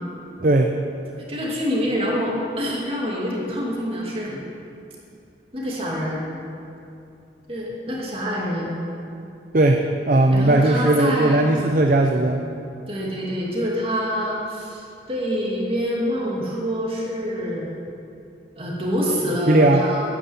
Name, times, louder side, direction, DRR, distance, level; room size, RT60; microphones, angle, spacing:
voice 1, 0.4-0.7 9.5-12.4 19.5-19.8, right 2 dB, 50° right, 3 dB, 0.7 m, -18 dB
voice 2, 1.3-4.4 5.5-6.2 7.5-8.7 10.3-11.4 12.9-17.7 18.6-20.0, equal, 30° right, -4 dB, 2.6 m, -26 dB
9.7 x 9.7 x 8.1 m, 2.7 s
head